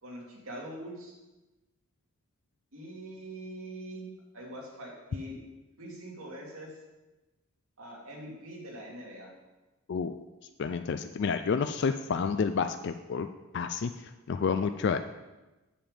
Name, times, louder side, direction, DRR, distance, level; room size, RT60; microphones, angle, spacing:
voice 1, 0.0-1.2 2.7-4.1 4.3-5.4 5.8-6.7 7.8-9.3, right 1 dB, 70° right, -2 dB, 2.3 m, -43 dB
voice 2, 9.9-10.2 10.6-13.3 13.5-13.9 14.3-15.0, left 5 dB, 50° left, 8 dB, 0.3 m, -29 dB
7.7 x 7.2 x 5.0 m, 1.1 s
head